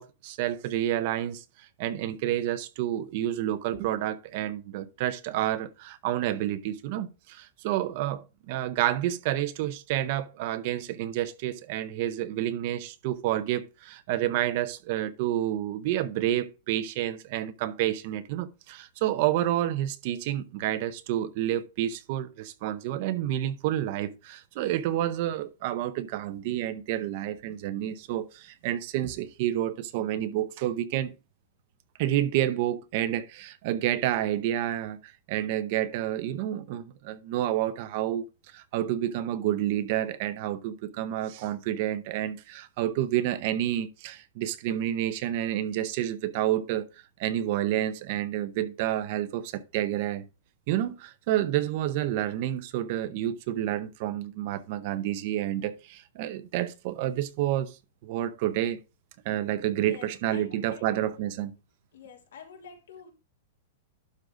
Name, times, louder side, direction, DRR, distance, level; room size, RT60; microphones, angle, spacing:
voice 1, 0.0-31.1 32.0-35.0 35.3-38.2 38.5-46.9 47.2-50.3 50.7-57.8 58.0-58.8 59.2-61.5, right 12 dB, 35° right, 0.6 m, -29 dB
voice 2, 59.8-60.9 61.9-63.1, left 6 dB, 90° left, 3.1 m, -48 dB
11.5 x 3.9 x 4.8 m
supercardioid pair, 180°, 0 cm